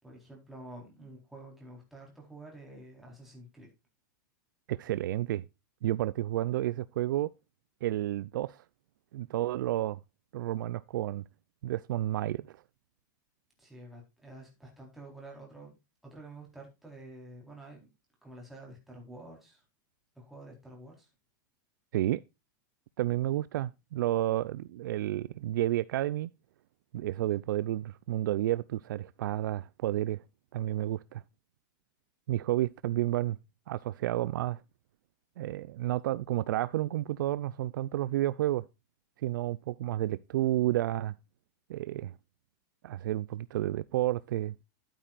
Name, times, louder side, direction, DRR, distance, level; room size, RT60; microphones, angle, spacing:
voice 1, 0.0-3.7 13.6-15.8 16.0-17.9 18.2-19.6 20.2-21.1, right 2 dB, ahead, 4.0 m, -49 dB
voice 2, 4.7-5.4 5.8-7.3 7.8-8.6 9.1-10.0 10.3-11.2 11.6-12.6 21.9-22.2 23.0-26.3 26.9-30.2 30.5-31.2 32.3-33.4 33.7-34.6 35.4-38.6 39.2-41.1 41.7-42.1 42.8-44.5, right 14 dB, 75° right, 0.4 m, -31 dB
12.0 x 8.8 x 2.4 m
supercardioid pair, 160°, 11 cm